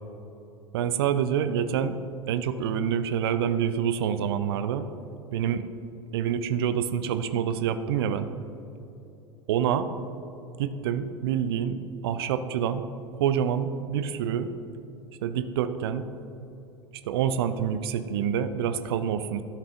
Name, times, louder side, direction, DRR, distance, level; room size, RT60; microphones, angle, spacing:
voice 1, 0.7-2.0 2.3-4.9 5.3-5.7 6.1-8.2 9.5-9.8 10.6-12.9 13.1-14.5 15.2-16.1 17.0-19.4, right 8 dB, 60° right, 11 dB, 0.5 m, -27 dB
11.5 x 7.4 x 2.5 m, 2.9 s
figure-of-eight pair, 80°, 15 cm